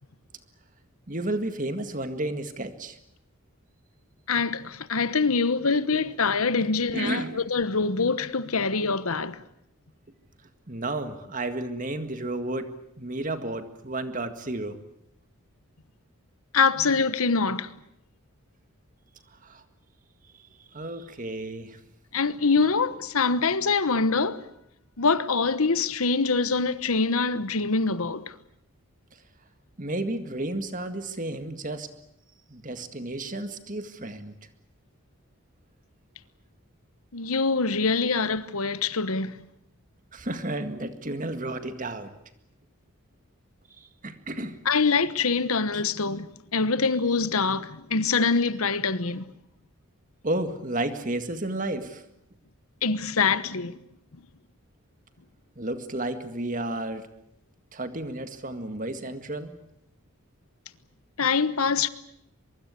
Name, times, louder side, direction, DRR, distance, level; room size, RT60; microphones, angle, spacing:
voice 1, 1.1-3.0 6.6-7.4 10.7-14.8 19.4-19.6 20.4-20.5 20.7-21.8 29.8-31.9 32.5-34.3 40.1-42.1 43.8-44.6 50.2-52.0 55.6-57.1 57.7-59.6, right 2 dB, 35° right, 1.9 m, -32 dB
voice 2, 4.3-9.4 16.5-17.7 22.1-24.4 25.0-28.2 37.1-39.4 44.6-49.3 52.8-53.7 61.2-61.9, left 4 dB, 75° left, 1.2 m, -24 dB
23.5 x 23.5 x 8.4 m
head